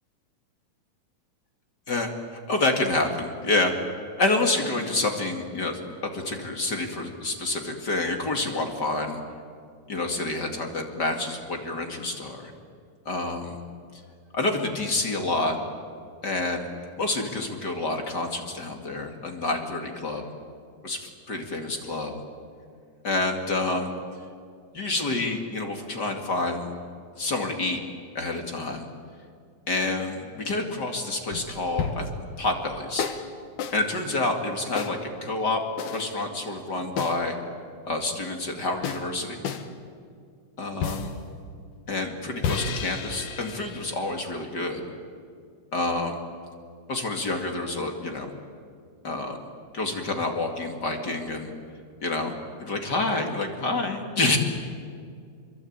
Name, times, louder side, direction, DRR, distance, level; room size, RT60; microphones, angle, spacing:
voice 1, 1.9-3.7 4.2-9.2 9.9-12.5 13.1-13.6 14.3-15.6 16.2-20.3 20.8-22.2 23.0-23.9 24.7-26.7 27.2-27.8 28.1-28.9 29.7-32.1 32.4-33.1 33.7-35.6 35.9-37.4 37.9-39.4 40.6-41.1 41.9-44.8 45.7-46.2 46.9-48.3 49.0-49.4 49.7-51.5 52.0-52.3 52.6-54.4, left 2 dB, 35° left, 3 dB, 2.5 m, -28 dB
sound 1, 31.3-32.2 33.0-33.3 33.6-33.8 34.8-35.0 35.8-36.1 37.0-37.2 38.8-39.1 39.4-39.7 40.8-41.2 42.4-44.5, left 6 dB, 75° left, 3.0 m, -32 dB
27.0 x 23.5 x 8.8 m, 2.2 s
omnidirectional pair, 3.7 m